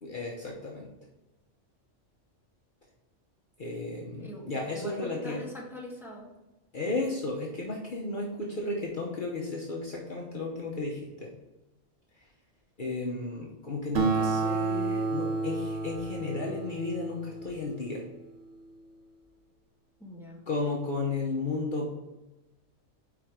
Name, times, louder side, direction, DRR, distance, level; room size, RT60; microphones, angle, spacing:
voice 1, 0.0-0.9 3.6-5.4 6.7-11.3 12.8-18.0 20.5-21.9, left 3 dB, 45° left, -2 dB, 1.0 m, -34 dB
voice 2, 4.2-6.3 20.0-20.4, equal, ahead, -3 dB, 1.2 m, -42 dB
Acoustic guitar, 13.9-18.8, right 4 dB, 80° right, 1.2 m, -31 dB
5.0 x 4.9 x 4.6 m, 1.0 s
omnidirectional pair, 1.3 m